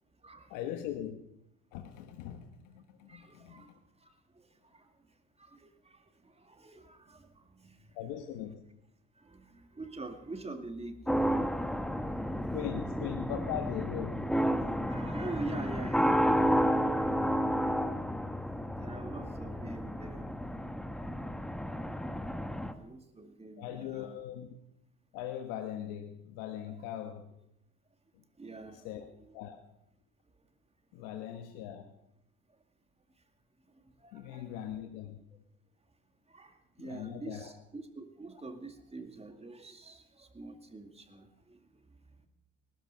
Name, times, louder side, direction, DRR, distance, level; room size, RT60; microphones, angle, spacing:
voice 1, 0.5-1.2 1.7-3.6 7.9-8.6 12.5-14.3 23.6-24.5 25.1-27.3 28.8-29.0 29.3-29.6 30.9-31.9 34.1-35.2 36.8-37.5, left 10 dB, 90° left, 6 dB, 1.2 m, -40 dB
voice 2, 3.1-3.7 4.7-4.8 5.5-5.7 6.4-7.8 9.2-11.3 14.9-16.3 17.0-17.3 18.8-20.4 22.5-24.2 26.6-26.9 28.4-29.1 34.0-34.8 36.3-36.5 36.8-41.6, right 2 dB, 20° right, 7 dB, 2.3 m, -45 dB
sound 1, 11.1-22.7, equal, ahead, 1.1 m, -31 dB
19.0 x 12.5 x 5.6 m, 0.81 s
supercardioid pair, 85°, 31 cm